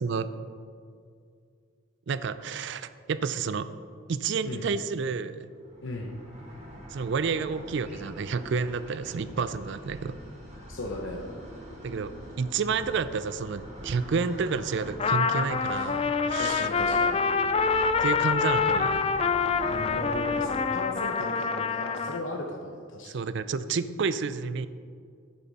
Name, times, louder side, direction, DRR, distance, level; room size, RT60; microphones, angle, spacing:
voice 1, 2.1-3.7 4.1-5.5 6.9-10.2 11.8-12.1 12.4-16.7 18.0-19.1 23.0-24.7, right 5 dB, 60° right, 13 dB, 0.4 m, -30 dB
sound 1, 5.5-20.4, equal, 30° right, 1.7 m, -44 dB
voice 2, 5.8-6.2 10.7-11.3 16.4-17.2 19.6-23.3, left 1 dB, 65° left, 0 dB, 0.9 m, -36 dB
Trumpet, 15.0-22.2, left 5 dB, 30° left, 0.3 m, -26 dB
9.8 x 9.4 x 4.1 m, 2.2 s
head